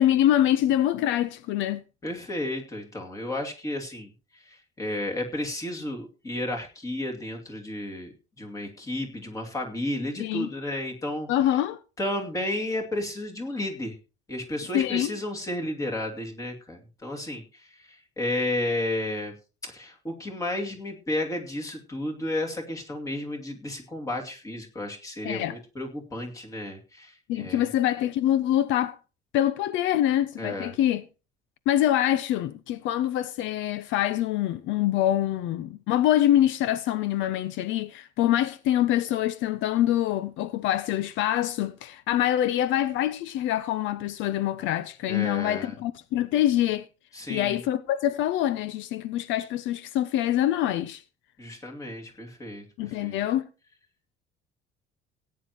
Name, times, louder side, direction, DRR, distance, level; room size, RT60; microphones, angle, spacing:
voice 1, 0.0-1.8 10.2-10.5 11.3-11.8 14.7-15.1 25.2-25.6 27.3-29.0 29.3-31.0 31.7-46.9 47.3-51.0 52.8-53.4, left 12 dB, 70° left, 0.7 m, -25 dB
voice 2, 2.0-11.3 12.0-14.0 14.3-19.3 19.6-27.7 30.4-30.7 45.1-45.7 47.1-47.6 51.4-53.2, left 1 dB, 15° left, 2.5 m, -32 dB
17.5 x 9.5 x 3.0 m
cardioid pair, 165°, 20 cm